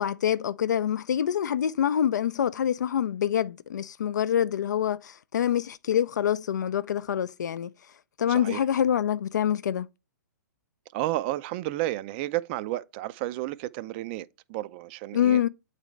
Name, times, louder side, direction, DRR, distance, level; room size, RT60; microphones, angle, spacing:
voice 1, 0.0-7.7 8.2-9.9 15.1-15.5, left 9 dB, 70° left, 0.4 m, -26 dB
voice 2, 8.3-8.6 10.9-15.4, right 16 dB, 35° right, 0.4 m, -32 dB
8.1 x 4.0 x 3.2 m
figure-of-eight pair, 120°, 10 cm